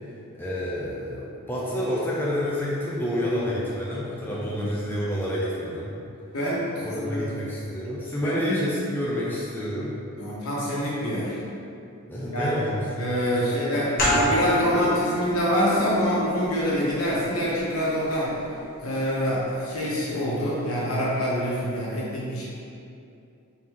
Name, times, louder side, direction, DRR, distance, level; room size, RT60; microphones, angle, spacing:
voice 1, 0.4-5.9 6.8-10.0 12.1-12.9 13.4-14.3, equal, 10° left, -7 dB, 0.5 m, -29 dB
voice 2, 4.3-4.6 6.3-7.3 8.2-8.6 10.2-11.4 12.2-12.5 13.0-18.3 18.8-22.4, equal, 80° left, -7 dB, 1.2 m, -26 dB
sound 1, 14.0-19.3, equal, 40° left, 1.1 m, -30 dB
3.8 x 3.7 x 3.0 m, 2.6 s
head